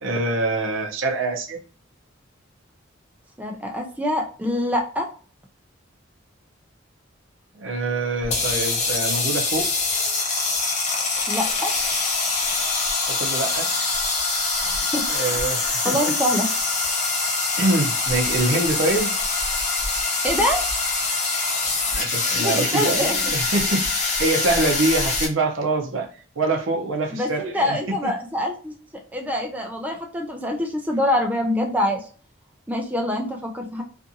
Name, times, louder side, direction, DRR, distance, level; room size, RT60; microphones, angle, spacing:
voice 1, 0.0-1.6 7.5-9.7 12.4-12.7 13.1-14.0 14.6-14.8 15.1-16.1 17.6-19.1 21.9-26.1 26.4-27.8 28.0-28.1, right 2 dB, 85° right, 0.6 m, -25 dB
voice 2, 3.4-5.1 11.3-11.7 14.9-15.4 15.8-16.5 20.2-20.6 22.3-23.2 27.1-28.7 29.1-32.1 32.7-33.8, left 1 dB, 10° right, 0.4 m, -25 dB
sound 1, 8.2-25.3, left 3 dB, 35° left, 0.7 m, -24 dB
2.6 x 2.5 x 2.6 m
head